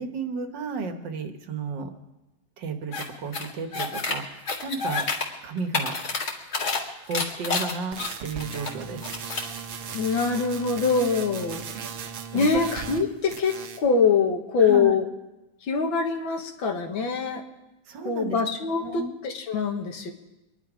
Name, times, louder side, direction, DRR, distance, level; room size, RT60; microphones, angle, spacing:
voice 1, 0.0-1.9 2.6-5.1 5.4-5.9 7.1-9.1 11.7-11.9 12.3-12.6 14.6-14.9 17.9-18.4 18.8-19.1, right 4 dB, 70° right, 6 dB, 1.9 m, -33 dB
sound 1, 2.9-3.0 3.3-4.1 4.5-5.2 5.6-6.8 7.1-8.7 9.0-9.5, left 4 dB, 55° left, 2.5 m, -28 dB
sound 2, 7.9-13.0 13.3-13.9, right 6 dB, 90° right, 1.9 m, -37 dB
voice 2, 9.9-11.6 12.3-15.1 15.7-17.4 18.1-20.1, left 5 dB, 80° left, 4 dB, 2.2 m, -24 dB
24.5 x 11.0 x 5.0 m, 0.99 s
omnidirectional pair, 2.1 m